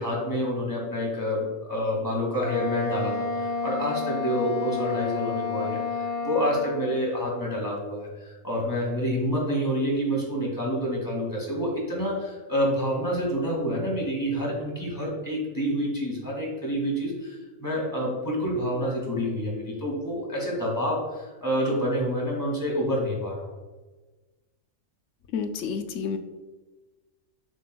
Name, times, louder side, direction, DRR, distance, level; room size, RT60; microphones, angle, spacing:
voice 1, 0.0-23.5, equal, 15° left, -3 dB, 2.0 m, -28 dB
Wind instrument woodwind instrument, 2.4-6.9, left 4 dB, 35° left, 0.7 m, -30 dB
voice 2, 25.3-26.2, left 6 dB, 70° left, 7 dB, 0.9 m, -29 dB
7.1 x 6.1 x 2.3 m, 1.2 s
omnidirectional pair, 1.4 m